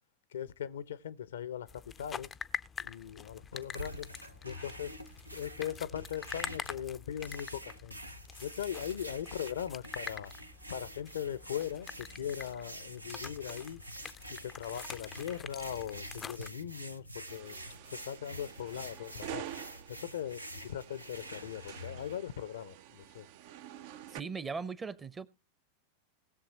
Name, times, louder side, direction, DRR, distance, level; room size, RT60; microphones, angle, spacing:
voice 1, 0.3-2.3 2.8-4.1 4.4-4.9 5.3-8.0 8.4-10.3 10.7-13.8 14.3-17.6 17.9-19.5 19.9-23.3, left 10 dB, 65° left, 0.6 m, -40 dB
sound 1, 1.7-16.5, left 6 dB, 20° left, 0.5 m, -46 dB
sound 2, 3.5-22.2, equal, 85° right, 0.8 m, -47 dB
sound 3, 17.3-24.2, right 11 dB, 50° right, 0.6 m, -48 dB
voice 2, 24.1-25.3, right 5 dB, 15° right, 0.8 m, -38 dB
19.5 x 7.1 x 2.9 m
figure-of-eight pair, 90°, 0 cm